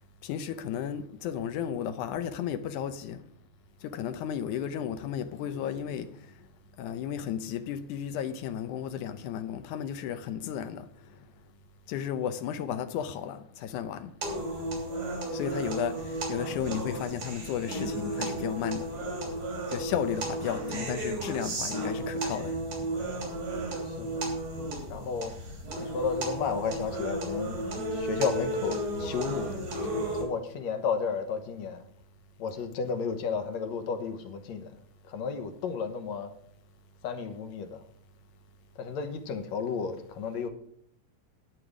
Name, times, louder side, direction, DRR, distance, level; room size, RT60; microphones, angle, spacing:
voice 1, 0.2-3.2 3.8-6.1 6.8-10.9 11.9-14.1 15.3-18.9 19.7-22.5, left 9 dB, 90° left, 2.3 m, -34 dB
voice 2, 5.4-6.0 23.9-24.2 24.9-25.4 25.8-27.6 27.9-29.5 30.2-31.8 32.4-34.7 35.1-36.3 37.0-37.8 38.8-40.5, left 5 dB, 70° left, 2.2 m, -33 dB
sound 1, 14.2-30.2, right 1 dB, 85° right, 4.7 m, -33 dB
11.5 x 9.5 x 5.0 m
omnidirectional pair, 3.4 m